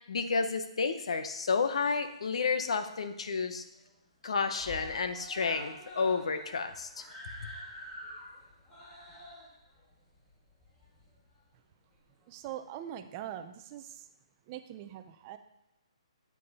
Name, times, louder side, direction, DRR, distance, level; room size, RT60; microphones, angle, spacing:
voice 1, 0.1-3.6 4.2-7.0, left 5 dB, 70° left, 9 dB, 0.9 m, -31 dB
Screaming, 1.7-2.6 2.9-3.0 3.3-3.4 3.7-4.2 4.5-11.4 12.2-12.3, left 1 dB, 15° left, 2.8 m, -48 dB
voice 2, 12.3-14.0 14.5-15.4, right 11 dB, 25° right, 8 dB, 0.6 m, -42 dB
8.4 x 7.5 x 4.1 m, 0.85 s
hypercardioid pair, 165°, 3 cm